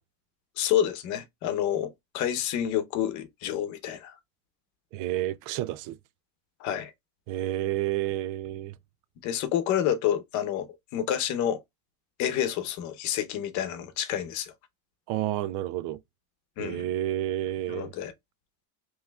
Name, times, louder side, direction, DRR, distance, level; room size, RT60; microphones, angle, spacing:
voice 1, 0.6-4.1 6.6-6.9 9.2-10.7 10.9-11.6 12.2-14.5 16.6-16.8 17.7-18.1, left 10 dB, 55° left, 0.9 m, -28 dB
voice 2, 4.9-6.0 7.3-8.7 15.1-16.0 16.6-17.9, right 14 dB, 60° right, 0.5 m, -30 dB
5.3 x 3.2 x 2.3 m
cardioid pair, 170°, 36 cm